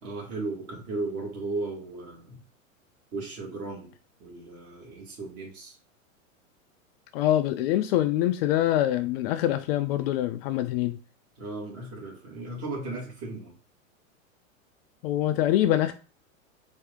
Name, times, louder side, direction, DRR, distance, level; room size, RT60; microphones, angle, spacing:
voice 1, 0.0-2.4 3.1-3.9 4.2-5.8 11.4-13.5, right 3 dB, 35° right, 2.2 m, -36 dB
voice 2, 7.1-11.0 15.0-15.9, left 13 dB, 50° left, 0.4 m, -24 dB
4.5 x 2.7 x 3.6 m
hypercardioid pair, 115°, 40 cm